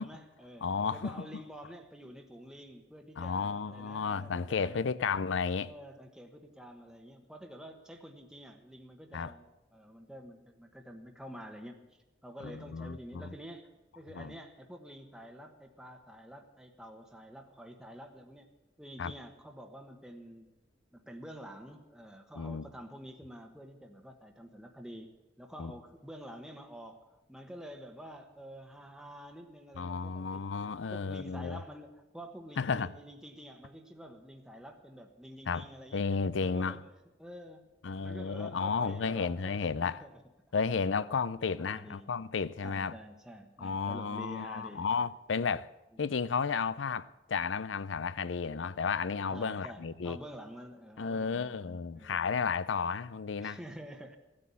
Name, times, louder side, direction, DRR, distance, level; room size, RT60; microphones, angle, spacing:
voice 1, 0.0-4.9 5.6-18.5 18.8-20.5 20.9-30.5 30.9-36.1 36.4-36.9 37.2-37.6 38.0-40.2 41.3-42.1 42.6-44.9 49.3-52.3 53.4-54.2, equal, 5° right, 1.2 m, -48 dB
voice 2, 0.6-1.4 3.2-5.7 9.1-9.3 12.4-13.3 14.1-14.3 19.0-19.1 22.4-22.6 25.6-25.7 29.8-31.6 32.6-32.9 35.5-35.7 35.9-36.8 37.8-40.0 40.5-43.0 43.6-45.7 46.0-50.2 51.0-53.6, left 5 dB, 75° left, 0.5 m, -33 dB
15.5 x 9.7 x 8.4 m
head